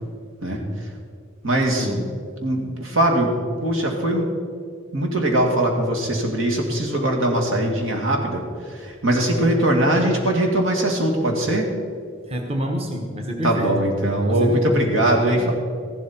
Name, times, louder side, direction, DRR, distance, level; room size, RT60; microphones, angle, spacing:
voice 1, 0.4-0.9 1.4-2.0 2.4-3.3 3.6-4.3 4.9-11.7 13.4-15.5, right 1 dB, 85° right, 0 dB, 2.2 m, -21 dB
voice 2, 1.8-2.2 12.3-13.8 14.2-15.5, equal, 30° right, 2 dB, 1.1 m, -29 dB
14.5 x 12.0 x 4.4 m, 2.2 s
head